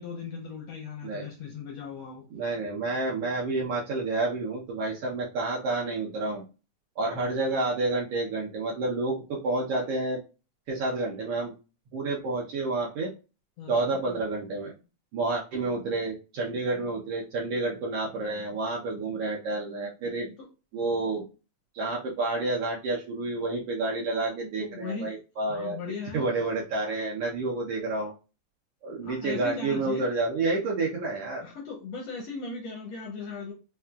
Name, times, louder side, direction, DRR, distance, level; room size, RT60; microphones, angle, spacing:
voice 1, 0.0-2.3 2.9-3.3 7.1-7.3 13.6-13.9 20.4-20.5 24.6-25.1 25.4-26.3 29.0-30.1 31.4-33.5, left 4 dB, 75° left, 1.5 m, -38 dB
voice 2, 2.3-6.4 7.0-10.2 10.7-11.5 11.9-13.1 13.7-14.7 15.1-20.3 20.7-21.2 21.7-25.8 26.1-28.1 28.8-31.4, right 3 dB, 70° right, 1.5 m, -29 dB
5.5 x 2.3 x 2.3 m
omnidirectional pair, 3.5 m